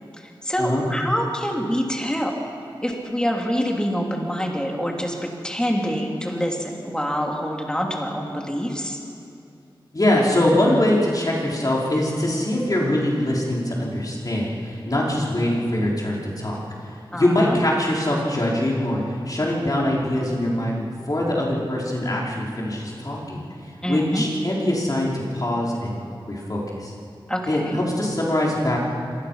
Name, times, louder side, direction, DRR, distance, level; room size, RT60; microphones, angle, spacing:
voice 1, 0.2-2.4 2.8-9.0 17.1-17.6 23.8-24.3 27.3-27.8, equal, 10° left, 0 dB, 3.3 m, -26 dB
voice 2, 9.9-16.6 17.1-23.5 23.9-26.0 26.3-26.9 27.5-28.8, left 1 dB, 45° left, -4 dB, 5.1 m, -23 dB
26.0 x 19.5 x 5.9 m, 2.6 s
wide cardioid pair, 75°, 9 cm